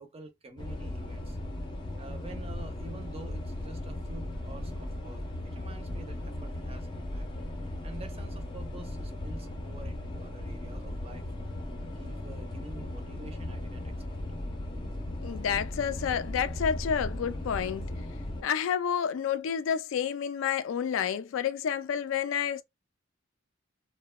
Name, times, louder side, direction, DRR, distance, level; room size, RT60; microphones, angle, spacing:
voice 1, 0.0-1.4 2.0-7.3 7.8-11.3 11.9-13.9, right 2 dB, 30° right, 0.6 m, -48 dB
sound 1, 0.6-18.4, left 1 dB, 25° left, 0.6 m, -37 dB
voice 2, 15.2-17.9 18.4-22.6, left 8 dB, 75° left, 0.3 m, -29 dB
2.9 x 2.1 x 2.2 m
head